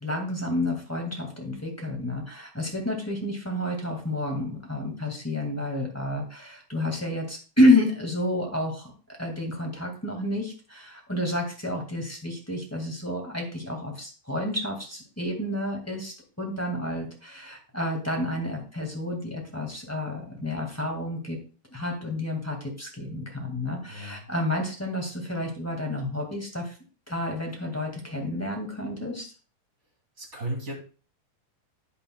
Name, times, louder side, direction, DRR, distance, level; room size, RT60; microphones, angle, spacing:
voice 1, 0.0-8.9 9.2-21.4 21.7-26.7 27.1-29.3, left 1 dB, 10° left, 0 dB, 1.0 m, -29 dB
voice 2, 23.9-24.2 30.2-30.7, right 1 dB, 25° right, 1 dB, 2.4 m, -34 dB
12.5 x 8.6 x 2.3 m, 0.36 s
omnidirectional pair, 3.8 m